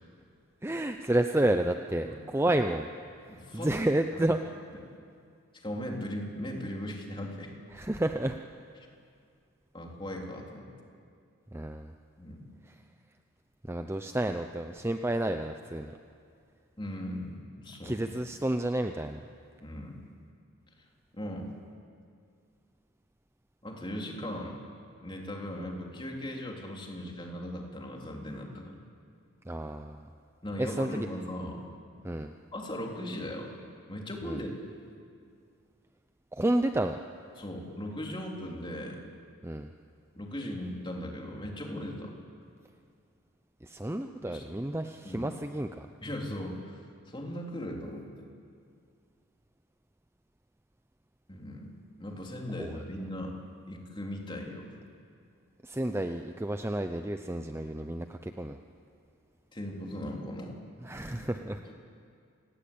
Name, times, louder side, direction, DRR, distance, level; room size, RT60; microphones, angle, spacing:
voice 1, 0.6-2.9 3.3-4.4 7.7-8.4 11.5-11.9 13.6-16.0 17.8-19.2 29.5-30.1 30.6-31.1 32.0-32.3 34.2-34.4 36.3-37.0 39.4-39.7 43.6-45.9 52.6-52.7 55.6-58.6 60.8-61.6, right 1 dB, 10° right, 6 dB, 0.6 m, -30 dB
voice 2, 3.3-3.8 4.1-4.3 5.5-7.5 8.8-8.9 9.7-10.7 12.2-12.5 16.8-18.2 19.6-20.0 21.1-21.5 23.6-24.6 25.0-28.8 30.4-31.6 32.5-33.5 33.9-34.5 37.4-39.0 40.1-42.1 44.3-44.4 45.0-45.3 46.0-46.8 47.1-48.3 51.3-51.7 52.0-53.3 53.7-54.7 59.5-60.6 61.1-61.3 61.6-61.7, left 1 dB, 20° left, 0 dB, 3.3 m, -38 dB
28.0 x 19.0 x 8.7 m, 2.3 s
head